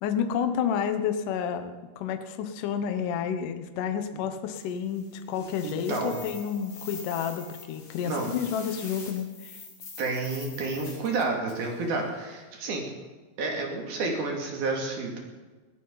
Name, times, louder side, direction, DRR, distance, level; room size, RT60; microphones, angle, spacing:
voice 1, 0.0-9.6, left 7 dB, 80° left, 8 dB, 1.8 m, -30 dB
sound 1, 4.6-11.8, left 4 dB, 40° left, 3.5 m, -45 dB
voice 2, 5.6-6.2 8.1-8.3 10.0-12.8 13.4-15.2, right 3 dB, 60° right, 0 dB, 4.1 m, -30 dB
21.0 x 17.0 x 4.1 m, 1.3 s
omnidirectional pair, 5.2 m